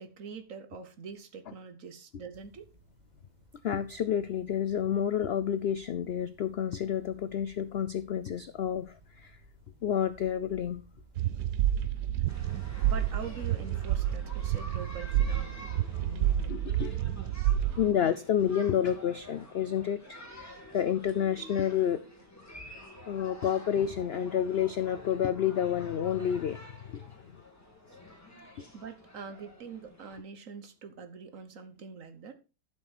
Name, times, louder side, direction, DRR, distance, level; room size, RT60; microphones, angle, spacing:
voice 1, 0.0-2.7 12.2-12.4 12.8-15.7 27.0-27.1 28.7-32.3, right 6 dB, 55° right, 1.4 m, -44 dB
sound 1, 2.3-13.5, right 1 dB, 25° right, 2.7 m, -56 dB
voice 2, 3.6-9.4 9.8-10.8 16.0-17.0 17.8-22.0 22.7-22.8 23.1-27.4 28.5-28.6, left 9 dB, 70° left, 0.6 m, -30 dB
sound 2, 11.2-17.9, right 11 dB, 80° right, 1.2 m, -29 dB
sound 3, 12.3-30.2, left 1 dB, 10° left, 2.0 m, -49 dB
11.5 x 6.6 x 4.3 m
omnidirectional pair, 1.7 m